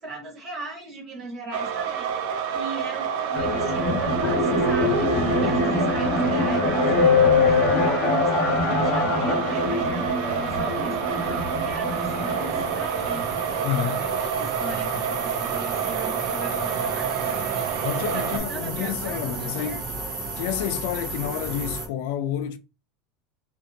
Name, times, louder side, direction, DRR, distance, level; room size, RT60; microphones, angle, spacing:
voice 1, 0.0-17.7 18.1-19.8, right 2 dB, 20° right, 1.1 m, -39 dB
sound 1, 1.5-18.4, right 8 dB, 60° right, 0.4 m, -28 dB
sound 2, 3.3-13.8, left 3 dB, 20° left, 0.7 m, -24 dB
sound 3, 9.7-21.9, right 3 dB, 45° right, 0.9 m, -34 dB
voice 2, 13.6-14.1 17.8-19.8 20.4-22.6, left 11 dB, 60° left, 0.3 m, -29 dB
2.6 x 2.5 x 2.5 m
supercardioid pair, 170°, 0 cm